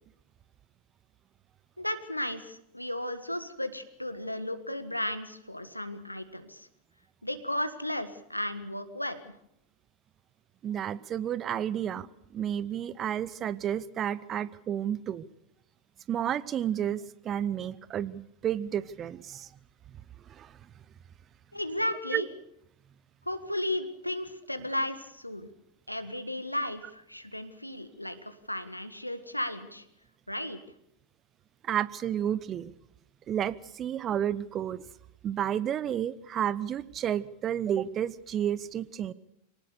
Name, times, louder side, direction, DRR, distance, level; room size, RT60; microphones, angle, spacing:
voice 1, 1.8-6.7 7.2-9.2 21.5-22.3 23.2-25.5 25.9-29.8 30.3-30.6, left 1 dB, 90° left, 10 dB, 1.6 m, -34 dB
voice 2, 10.6-12.1 12.3-15.3 16.1-19.5 20.3-20.5 22.1-22.2 31.6-32.7 33.3-34.8 35.2-39.1, right 10 dB, 30° right, 19 dB, 0.9 m, -31 dB
24.5 x 18.5 x 6.9 m, 0.79 s
figure-of-eight pair, 90°, 0 cm